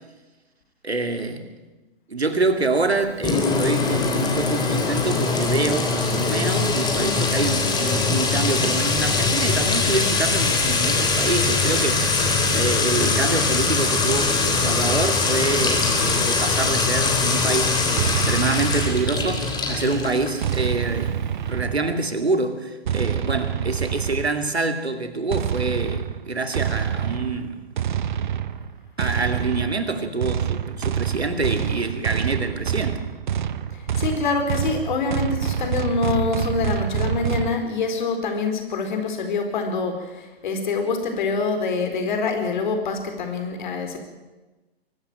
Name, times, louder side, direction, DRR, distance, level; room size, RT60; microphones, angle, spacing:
voice 1, 0.8-1.4 2.1-12.1 12.5-27.6 29.0-33.0, right 3 dB, 80° right, 2.7 m, -26 dB
Sink (filling or washing) / Trickle dribble / Fill (with liquid), 3.2-20.7, left 4 dB, 15° left, 3.5 m, -22 dB
sound 1, 18.0-19.7 20.4-22.1 22.9-24.5 25.3-37.6, right 9 dB, 50° right, 1.1 m, -27 dB
voice 2, 34.0-39.9 40.4-44.0, left 4 dB, 50° left, 4.2 m, -25 dB
23.0 x 13.0 x 9.1 m
figure-of-eight pair, 125°, 31 cm